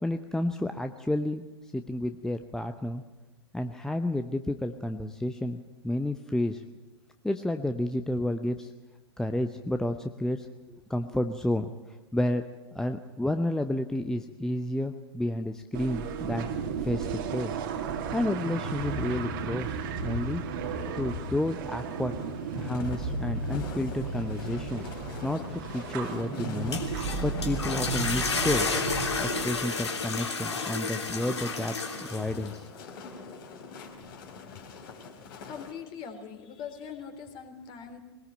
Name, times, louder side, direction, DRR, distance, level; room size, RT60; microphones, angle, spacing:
voice 1, 0.0-3.0 3.5-6.6 7.2-8.7 9.2-12.4 12.7-16.5 16.8-17.6 18.1-20.4 21.0-22.2 22.5-24.9 25.2-28.7 29.2-31.8 32.1-32.7, left 1 dB, 5° left, 8 dB, 0.8 m, -31 dB
sound 1, 15.7-29.4, right 4 dB, 50° right, 2.4 m, -34 dB
sound 2, 22.2-35.7, left 4 dB, 50° left, 4.1 m, -44 dB
sound 3, 26.5-32.5, left 4 dB, 75° left, 3.3 m, -31 dB
voice 2, 35.4-38.0, left 7 dB, 35° left, 6 dB, 3.5 m, -41 dB
22.0 x 19.0 x 8.9 m, 1.2 s
figure-of-eight pair, 100°, 15 cm